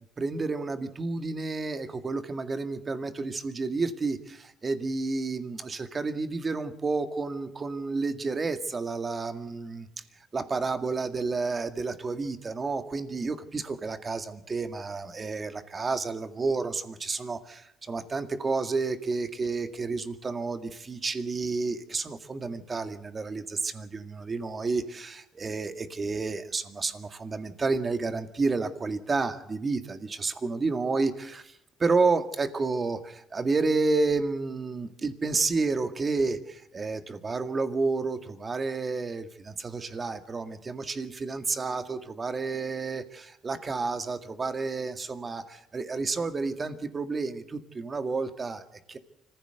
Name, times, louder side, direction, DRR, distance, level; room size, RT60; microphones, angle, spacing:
voice 1, 0.2-9.9 10.3-49.0, right 3 dB, 30° right, 8 dB, 2.0 m, -30 dB
25.0 x 15.5 x 8.0 m, 0.77 s
cardioid pair, 90°, 0 cm